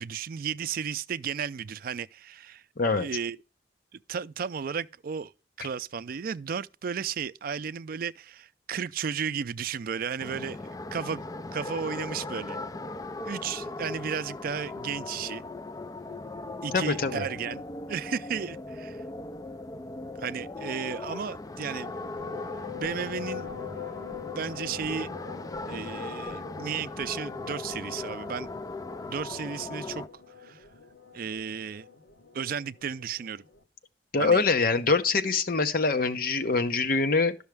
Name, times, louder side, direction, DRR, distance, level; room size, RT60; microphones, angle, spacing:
voice 1, 0.0-2.6 2.9-3.4 4.1-5.3 5.6-11.2 11.5-12.6 13.2-15.4 16.6-17.6 17.9-19.0 20.2-21.9 22.8-23.5 24.4-25.1 25.7-28.5 29.1-30.0 30.4-30.7 31.1-31.9 32.3-33.4 34.2-34.4, right 7 dB, 55° right, 0.4 m, -34 dB
voice 2, 2.8-3.1 16.7-17.2 34.1-37.3, left 4 dB, 55° left, 0.9 m, -24 dB
sound 1, 10.2-30.1, left 2 dB, 20° left, 0.4 m, -38 dB
sound 2, 21.8-33.6, left 7 dB, 80° left, 1.1 m, -44 dB
11.5 x 6.4 x 3.4 m
head